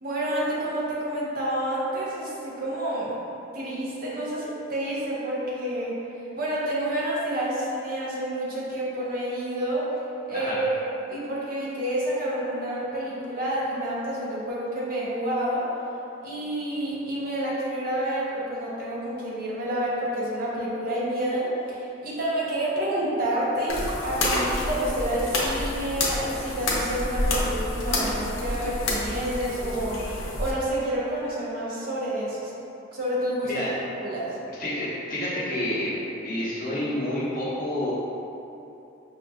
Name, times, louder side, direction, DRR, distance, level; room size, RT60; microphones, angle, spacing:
voice 1, 0.0-3.1 3.5-6.0 6.4-10.0 10.3-10.8 11.1-15.7 16.2-30.0 30.4-32.5 32.9-33.5 34.0-34.4, right 1 dB, 45° right, -7 dB, 0.7 m, -29 dB
sound 1, 23.7-30.5, left 1 dB, 85° left, 0.6 m, -28 dB
voice 2, 34.6-35.9 36.2-37.9, left 1 dB, 45° left, -9 dB, 1.0 m, -29 dB
5.3 x 2.6 x 2.3 m, 2.9 s
head